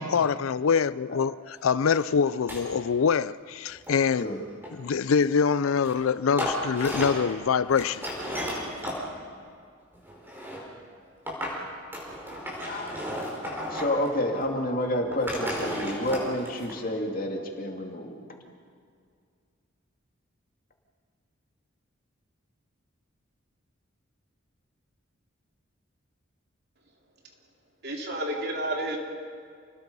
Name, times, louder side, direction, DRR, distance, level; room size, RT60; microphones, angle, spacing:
voice 1, 0.0-4.3 4.7-8.1, left 6 dB, 80° left, 0.5 m, -24 dB
sound 1, 1.9-2.0 2.3-2.6 3.7-5.0 5.8-6.0 6.3-7.3 7.7-9.0 9.9-10.7 11.3-11.6 11.9-14.1 14.3-14.4 15.0-16.7, equal, 10° right, 4.8 m, -34 dB
voice 2, 12.6-13.2 13.7-18.2, left 1 dB, 45° left, 2.5 m, -29 dB
voice 3, 27.8-29.0, right 1 dB, 50° right, 3.3 m, -30 dB
29.0 x 20.5 x 5.5 m
head